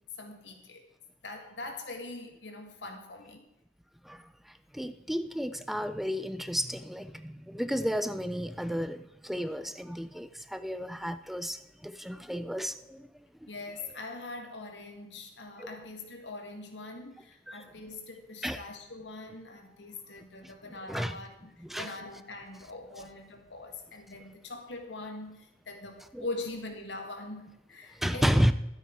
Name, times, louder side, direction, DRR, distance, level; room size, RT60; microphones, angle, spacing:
voice 1, 0.2-0.9 1.2-3.5 13.5-28.4, left 2 dB, 80° left, 4 dB, 1.9 m, -42 dB
voice 2, 4.0-13.1 13.4-13.5 15.6-15.7 17.5-17.7 18.4-18.6 20.9-21.2 21.6-21.9 26.1-26.2 28.0-28.5, equal, ahead, 11 dB, 0.3 m, -32 dB
12.0 x 9.6 x 4.6 m, 0.93 s
head